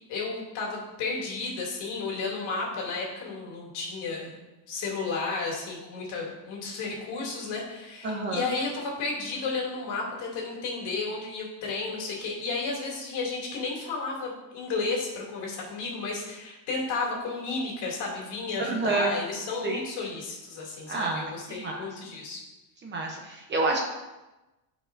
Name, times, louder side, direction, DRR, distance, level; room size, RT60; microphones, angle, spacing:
voice 1, 0.1-4.3 4.7-22.4, left 3 dB, 55° left, -2 dB, 2.7 m, -33 dB
voice 2, 8.0-8.5 18.6-19.1 19.6-19.8 20.9-21.8 22.8-23.8, right 3 dB, 25° right, 0 dB, 0.8 m, -29 dB
13.0 x 5.0 x 2.6 m, 1.1 s
cardioid pair, 160°, 47 cm